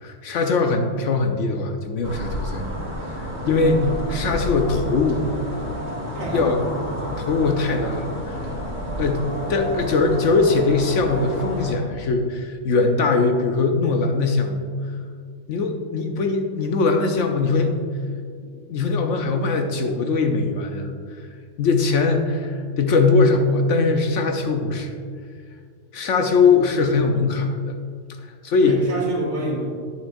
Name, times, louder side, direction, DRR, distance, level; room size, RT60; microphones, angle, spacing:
voice 1, 0.0-2.7 3.1-3.2 3.5-5.3 6.3-6.6 7.2-8.4 9.0-9.2 9.5-14.6 15.5-17.7 18.7-20.9 21.6-25.0 25.9-27.7 28.4-28.8, left 4 dB, 70° left, 4 dB, 1.0 m, -21 dB
sound 1, 2.0-11.7, equal, 35° right, 1.8 m, -30 dB
voice 2, 6.2-6.7 28.6-29.7, right 1 dB, 60° right, -3 dB, 1.8 m, -28 dB
9.5 x 9.3 x 2.6 m, 2.1 s
omnidirectional pair, 1.4 m